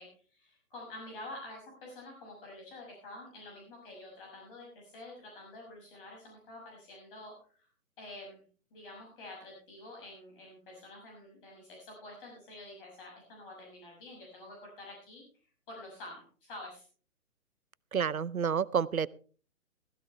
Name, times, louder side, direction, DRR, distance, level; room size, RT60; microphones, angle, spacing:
voice 1, 0.0-7.7 8.0-8.4 8.7-15.2 15.7-16.9, left 1 dB, 40° left, -1 dB, 6.1 m, -48 dB
voice 2, 17.9-19.1, right 7 dB, 85° right, 20 dB, 0.8 m, -29 dB
15.5 x 15.0 x 3.2 m, 0.41 s
figure-of-eight pair, 135°, 41 cm